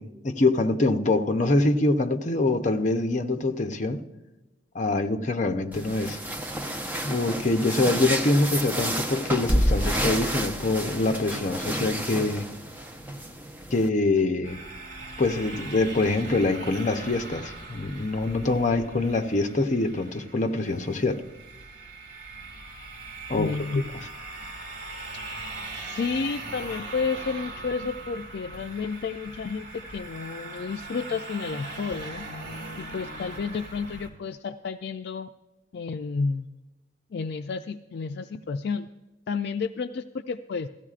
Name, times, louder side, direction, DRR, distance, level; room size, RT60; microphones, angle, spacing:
voice 1, 0.0-4.0 4.7-6.2 7.0-12.5 13.7-14.6 15.2-21.2 23.3-23.5, left 2 dB, 45° left, 0.7 m, -24 dB
sound 1, 5.7-13.9, equal, 10° right, 0.8 m, -29 dB
sound 2, 14.4-34.1, right 2 dB, 55° right, 2.6 m, -40 dB
voice 2, 23.4-23.9 25.8-32.3 32.8-35.3 35.7-36.5 37.1-38.9 39.3-40.7, left 5 dB, 60° left, 0.4 m, -31 dB
16.5 x 14.0 x 2.4 m
head